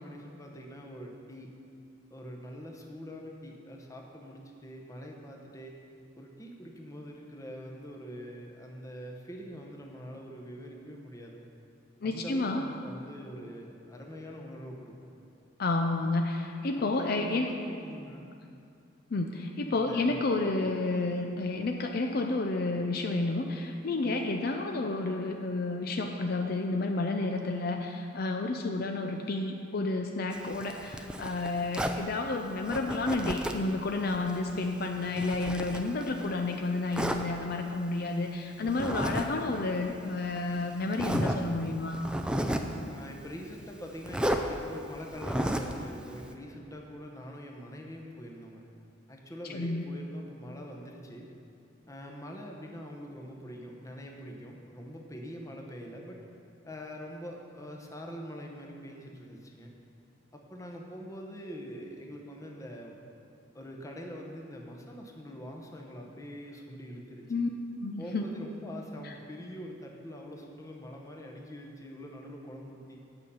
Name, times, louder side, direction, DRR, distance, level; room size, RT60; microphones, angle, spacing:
voice 1, 0.0-1.5 2.1-5.8 6.1-11.5 12.0-14.9 16.7-18.3 19.8-20.4 42.9-48.7 49.1-51.3 51.9-56.2 56.6-59.7 60.3-63.0 63.5-67.3 68.0-73.0, equal, 15° left, 1 dB, 0.9 m, -44 dB
voice 2, 12.0-12.7 15.6-17.5 19.1-42.0 49.5-49.8 67.3-67.5 67.8-68.2 69.0-69.1, left 2 dB, 50° left, 3 dB, 0.5 m, -30 dB
Zipper (clothing), 30.3-32.0 32.7-33.7 34.1-36.3 36.9-37.2 38.7-39.3 39.5-39.7 40.4-40.5 40.9-41.4 41.9-42.7 44.1-44.4 45.1-45.8, equal, 5° right, 0.4 m, -32 dB
9.1 x 5.6 x 6.9 m, 2.5 s
head